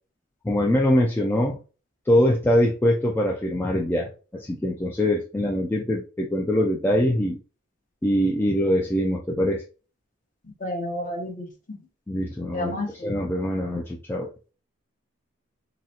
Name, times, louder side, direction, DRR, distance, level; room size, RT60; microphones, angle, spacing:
voice 1, 0.4-1.6 2.1-7.4 8.0-9.6 12.1-14.3, left 1 dB, 10° left, -1 dB, 0.3 m, -23 dB
voice 2, 10.6-11.5 12.5-13.1, left 1 dB, 40° left, 2 dB, 0.9 m, -30 dB
3.9 x 2.0 x 2.7 m, 0.34 s
head